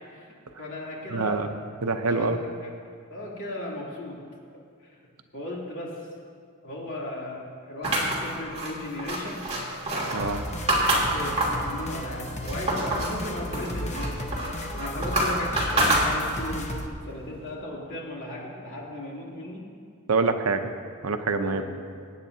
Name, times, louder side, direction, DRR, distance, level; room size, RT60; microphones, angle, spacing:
voice 1, 0.6-1.5 2.1-2.3 2.6-2.7 3.1-4.2 4.8-4.9 5.3-6.0 6.6-9.5 10.9-14.1 14.8-19.6 21.4-21.7, left 1 dB, 60° left, -5 dB, 3.0 m, -36 dB
voice 2, 1.1-1.5 1.8-2.4 10.1-10.4 20.1-20.7 21.0-21.6, right 4 dB, 75° right, 8 dB, 0.7 m, -25 dB
sound 1, 7.8-11.7 12.1-13.2 13.5-16.5, right 1 dB, 30° right, 2.6 m, -26 dB
sound 2, 10.2-16.9, equal, 30° left, 1.0 m, -34 dB
24.0 x 9.3 x 2.8 m, 2.2 s
head